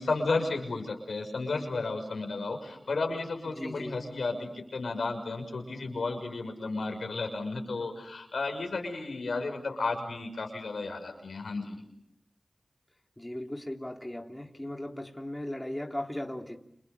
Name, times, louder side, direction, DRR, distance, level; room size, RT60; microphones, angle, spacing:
voice 1, 0.0-11.8, left 3 dB, 90° left, 4 dB, 6.1 m, -33 dB
voice 2, 3.5-4.0 13.2-16.6, left 1 dB, 15° left, 2 dB, 3.4 m, -37 dB
30.0 x 28.5 x 6.9 m, 0.76 s
cardioid pair, 50°, 0 cm